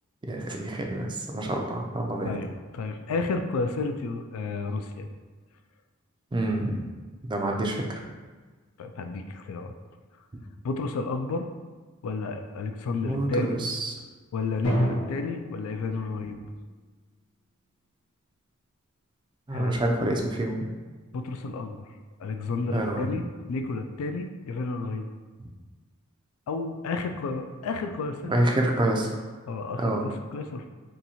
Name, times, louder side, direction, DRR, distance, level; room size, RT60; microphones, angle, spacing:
voice 1, 0.3-2.4 6.3-6.8 7.2-8.0 13.0-13.9 19.5-20.7 22.7-23.2 28.2-29.2 29.8-30.0, right 1 dB, 20° right, 1 dB, 0.4 m, -27 dB
voice 2, 2.2-5.1 8.8-9.7 10.6-11.5 12.0-13.6 14.3-16.4 19.5-19.8 21.1-21.9 22.2-25.1 26.5-28.4 29.5-30.7, left 3 dB, 70° left, 6 dB, 0.3 m, -31 dB
Drum, 14.6-16.6, equal, 90° left, 0.8 m, -30 dB
2.8 x 2.7 x 4.1 m, 1.4 s
head